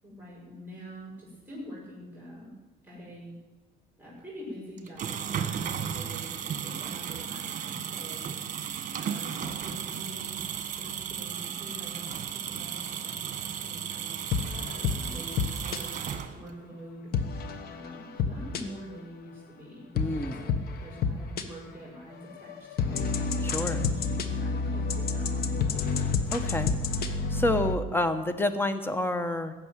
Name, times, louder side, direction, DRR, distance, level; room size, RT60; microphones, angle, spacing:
voice 1, 0.0-2.5 2.8-3.3 4.0-8.2 9.0-10.4 10.8-14.2 14.5-16.0 16.3-17.1 17.7-19.9 20.3-23.1 23.7-24.0 24.3-25.5, equal, 10° right, -6 dB, 5.8 m, -45 dB
sound 1, 4.8-16.6, right 8 dB, 50° right, 1.5 m, -35 dB
sound 2, 14.3-15.8 17.1-19.0 20.0-21.4 22.1-27.8, left 5 dB, 65° left, 1.3 m, -29 dB
voice 2, 19.9-20.4 23.4-23.9 26.3-26.8 27.3-29.5, left 2 dB, 15° left, 10 dB, 1.2 m, -28 dB
16.0 x 7.0 x 9.2 m, 1.2 s
cardioid pair, 110°, 17 cm